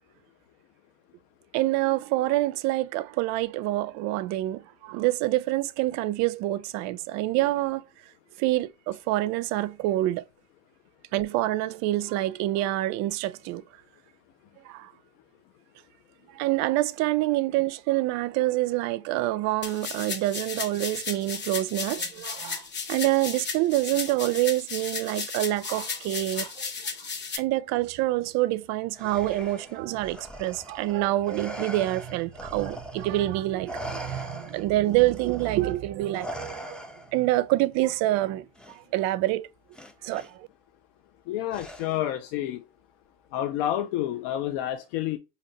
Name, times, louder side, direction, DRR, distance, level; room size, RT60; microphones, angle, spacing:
voice 1, 1.5-7.8 8.4-10.2 11.1-13.6 14.7-14.9 16.4-22.6 22.9-26.5 27.4-36.8 37.1-38.5 38.9-39.5 40.0-40.2, right 16 dB, 65° right, 0.4 m, -26 dB
sound 1, 19.6-27.4, left 5 dB, 35° left, 0.9 m, -34 dB
Respiratory sounds, 29.0-33.3 33.7-37.3 38.6-38.8 39.7-40.3 41.5-42.1, equal, 5° left, 0.5 m, -41 dB
voice 2, 41.3-42.6 43.3-45.2, left 12 dB, 75° left, 0.5 m, -29 dB
3.8 x 2.8 x 2.6 m
supercardioid pair, 90°, 30 cm